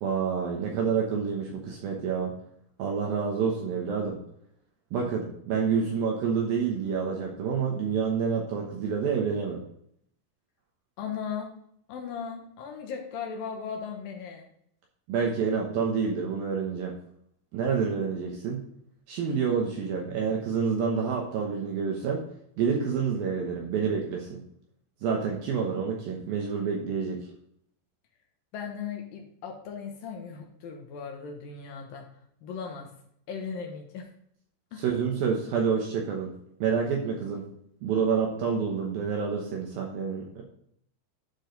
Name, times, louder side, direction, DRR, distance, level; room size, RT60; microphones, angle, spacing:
voice 1, 0.0-2.3 2.8-4.2 4.9-9.6 15.1-16.9 17.5-18.6 19.1-22.2 22.6-24.4 25.0-27.2 34.8-36.3 36.6-37.5 37.8-40.4, right 6 dB, 70° right, 0 dB, 2.5 m, -28 dB
voice 2, 11.0-11.5 11.9-14.5 28.5-32.1 32.4-32.9 33.3-34.1 34.7-34.8, left 6 dB, 70° left, 3 dB, 2.4 m, -37 dB
11.5 x 4.9 x 3.9 m, 0.71 s
omnidirectional pair, 5.0 m